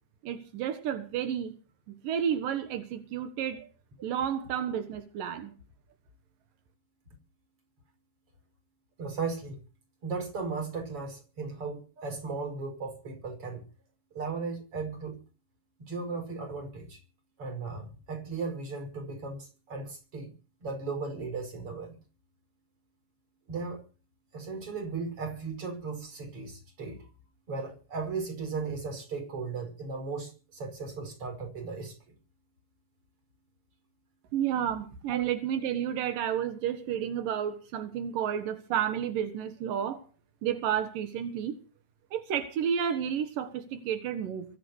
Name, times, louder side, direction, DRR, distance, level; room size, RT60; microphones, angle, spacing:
voice 1, 0.2-1.6 2.0-3.7 4.0-5.5 34.3-40.0 40.4-41.5 42.1-44.5, right 9 dB, 90° right, 3.2 m, -31 dB
voice 2, 9.0-9.6 10.0-13.6 14.1-15.2 15.8-17.0 17.4-20.3 20.6-22.0 23.5-23.8 24.3-27.1 27.5-31.9 35.1-35.3, right 4 dB, 40° right, 6.1 m, -36 dB
23.5 x 9.2 x 6.5 m
omnidirectional pair, 3.8 m